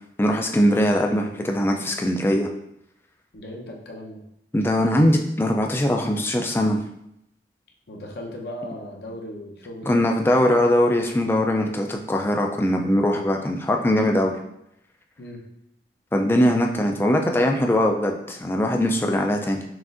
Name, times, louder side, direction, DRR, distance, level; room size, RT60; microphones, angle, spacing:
voice 1, 0.2-2.5 4.5-6.8 9.9-14.4 16.1-19.6, left 1 dB, 15° left, 3 dB, 0.3 m, -21 dB
voice 2, 3.3-4.2 7.9-10.3 15.2-15.5, left 1 dB, 65° left, 0 dB, 0.7 m, -37 dB
5.9 x 2.5 x 2.5 m, 0.79 s
head